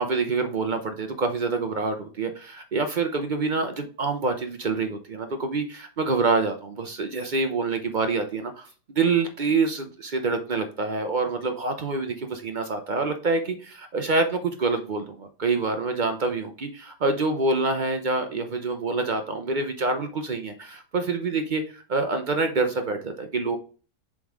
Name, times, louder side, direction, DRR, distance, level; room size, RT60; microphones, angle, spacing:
voice 1, 0.0-23.6, right 3 dB, 60° right, 6 dB, 0.5 m, -26 dB
7.2 x 3.8 x 4.8 m, 0.38 s
omnidirectional pair, 1.7 m